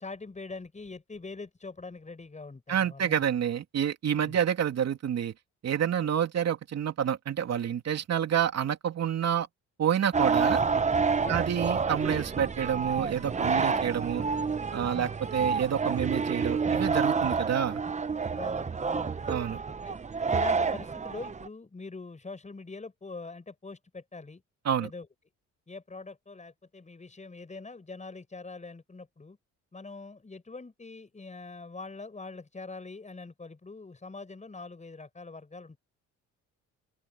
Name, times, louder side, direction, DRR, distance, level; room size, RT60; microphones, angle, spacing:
voice 1, 0.0-3.2 4.2-4.4 6.0-6.1 11.2-11.5 14.9-15.1 18.3-19.3 19.8-20.0 20.3-24.4 24.8-25.1 25.7-29.4 29.7-35.8, left 3 dB, 25° left, 6.7 m, -43 dB
voice 2, 2.7-5.3 5.6-9.5 9.8-10.6 11.3-14.3 14.7-17.8 19.3-19.6 24.6-24.9, right 9 dB, 60° right, 2.8 m, -28 dB
sound 1, 10.1-21.5, right 5 dB, 25° right, 0.9 m, -29 dB
open air
cardioid pair, 90°, 30 cm